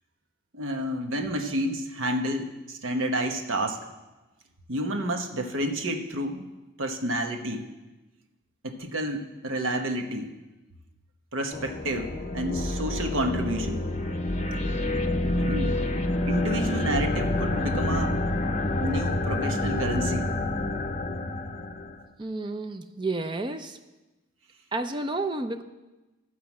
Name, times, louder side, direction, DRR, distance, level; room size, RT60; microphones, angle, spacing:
voice 1, 0.5-3.8 4.7-6.5 6.8-7.7 8.6-10.3 11.3-13.8 15.3-15.7 16.3-18.2 18.8-20.3, right 1 dB, 75° right, 4 dB, 1.2 m, -30 dB
sound 1, 11.5-22.0, left 1 dB, 35° left, 0.6 m, -28 dB
voice 2, 22.2-23.8 24.7-25.6, right 2 dB, 20° right, 8 dB, 0.4 m, -31 dB
14.0 x 4.8 x 7.2 m, 1.1 s
head